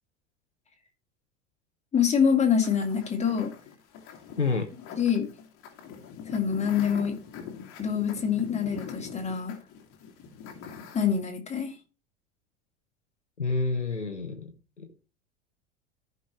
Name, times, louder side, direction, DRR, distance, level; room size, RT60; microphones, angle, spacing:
voice 1, 1.9-3.5 5.0-5.3 6.3-7.2 7.8-9.6 10.9-11.7, left 7 dB, 20° left, 2.6 m, -25 dB
sound 1, 2.6-11.2, left 6 dB, 40° left, 2.1 m, -43 dB
voice 2, 4.4-4.7 13.4-14.9, left 4 dB, 85° left, 1.2 m, -29 dB
15.0 x 5.6 x 3.1 m
figure-of-eight pair, 80°, 35 cm